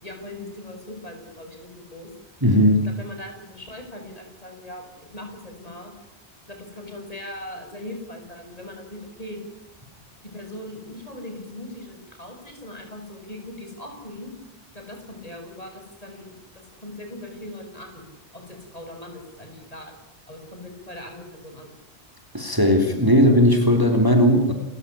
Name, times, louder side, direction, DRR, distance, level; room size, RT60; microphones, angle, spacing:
voice 1, 0.0-2.1 2.7-5.9 6.5-9.4 10.2-14.3 14.7-18.0 18.3-20.0 20.3-21.7, left 1 dB, 35° left, 4 dB, 7.1 m, -40 dB
voice 2, 2.4-2.9 22.3-24.5, equal, 20° right, 4 dB, 3.1 m, -17 dB
29.0 x 16.0 x 10.0 m, 0.90 s
omnidirectional pair, 1.2 m